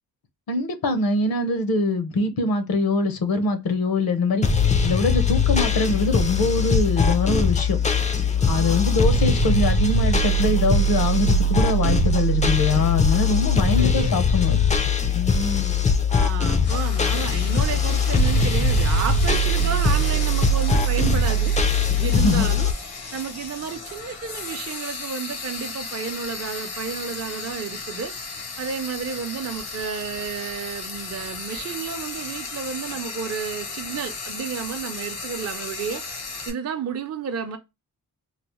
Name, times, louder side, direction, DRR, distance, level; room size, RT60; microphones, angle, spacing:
voice 1, 0.5-4.5 4.8-7.8 8.5-14.6 15.1-15.8 22.1-22.5, left 2 dB, 70° left, 0.8 m, -23 dB
sound 1, 4.4-22.7, left 2 dB, 20° left, 0.4 m, -21 dB
voice 2, 8.4-9.0 13.8-14.1 16.1-21.7 22.0-22.7 23.1-28.1 28.6-36.2 36.5-37.6, right 7 dB, 45° right, 0.5 m, -31 dB
Frying (food), 16.6-36.5, left 4 dB, 90° left, 1.3 m, -35 dB
3.9 x 2.0 x 2.9 m
wide cardioid pair, 135°, 37 cm